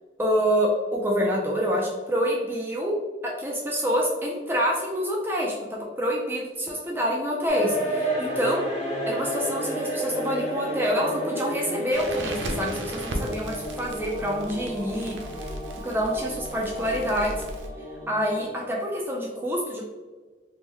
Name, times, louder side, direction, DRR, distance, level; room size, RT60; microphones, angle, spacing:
voice 1, 0.2-3.0 3.2-5.5 6.0-8.6 9.1-15.2 15.8-17.3 17.8-19.8, equal, 10° right, -2 dB, 0.3 m, -27 dB
sound 1, 7.5-18.7, right 1 dB, 40° left, 1.0 m, -32 dB
Crackle, 11.9-17.7, right 1 dB, 90° right, 0.5 m, -36 dB
3.5 x 2.1 x 3.1 m, 1.3 s
head